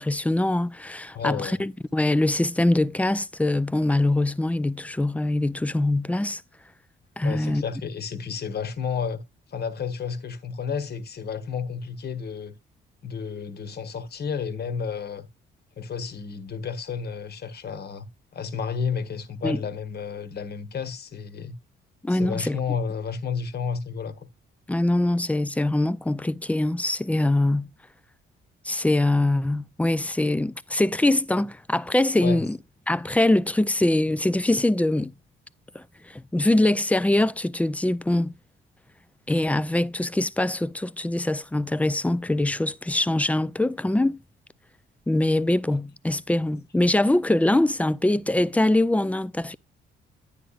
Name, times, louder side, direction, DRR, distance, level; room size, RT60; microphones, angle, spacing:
voice 1, 0.0-6.4 7.2-7.6 19.4-19.6 22.0-22.6 24.7-27.7 28.6-32.6 32.9-35.1 35.7-38.3 39.3-44.2 45.1-49.5, left 1 dB, 5° left, 0.4 m, -23 dB
voice 2, 1.1-1.6 7.2-9.2 9.5-12.5 13.0-15.3 15.8-21.6 22.1-24.3 32.2-32.5, left 6 dB, 55° left, 1.3 m, -31 dB
10.0 x 9.2 x 2.4 m
cardioid pair, 90°, 20 cm